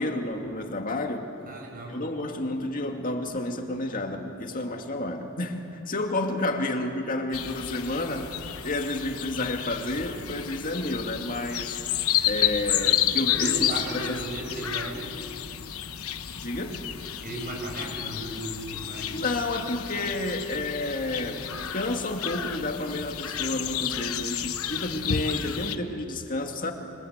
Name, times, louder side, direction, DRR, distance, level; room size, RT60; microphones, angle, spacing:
voice 1, 0.0-1.3 1.9-8.3 8.6-11.8 12.3-14.2 16.3-16.8 19.1-26.7, left 2 dB, 40° left, 3 dB, 2.2 m, -30 dB
voice 2, 1.5-2.0 13.3-15.1 17.2-19.2, right 1 dB, 40° right, 0 dB, 6.9 m, -35 dB
sound 1, 7.3-25.8, left 10 dB, 85° left, 1.1 m, -31 dB
27.0 x 25.0 x 8.2 m, 3.0 s
head